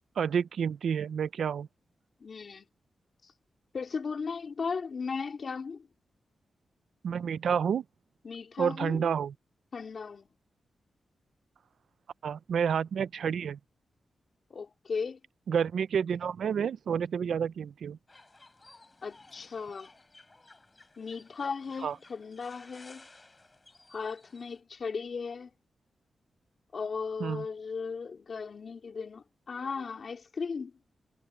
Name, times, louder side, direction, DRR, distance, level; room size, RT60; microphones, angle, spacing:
voice 1, 0.2-1.7 7.0-7.8 8.6-9.3 12.2-13.6 15.5-18.0 21.8-21.9 27.2-27.4, right 7 dB, 80° right, 0.5 m, -29 dB
voice 2, 2.2-2.7 3.2-3.3 3.7-5.9 8.2-9.1 9.7-10.3 14.5-15.2 19.0-19.9 21.0-23.1 23.9-25.5 26.7-30.7, left 5 dB, 50° left, 3.3 m, -36 dB
sound 1, 18.1-24.6, left 2 dB, 25° left, 5.9 m, -57 dB
wide cardioid pair, 115°, 0 cm